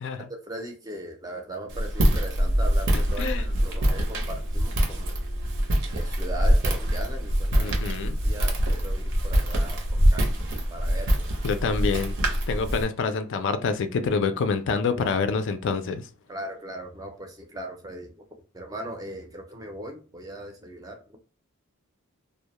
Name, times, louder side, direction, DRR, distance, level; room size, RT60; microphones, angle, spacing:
voice 1, 0.3-5.1 5.9-10.3 10.7-11.2 16.3-18.3 18.5-21.2, right 1 dB, 15° right, 0.5 m, -39 dB
Walk footsteps, 1.7-12.8, equal, 55° right, 0.6 m, -24 dB
voice 2, 7.5-8.1 11.4-12.2 12.5-16.1, left 5 dB, 55° left, 0.4 m, -27 dB
2.2 x 2.0 x 2.8 m
head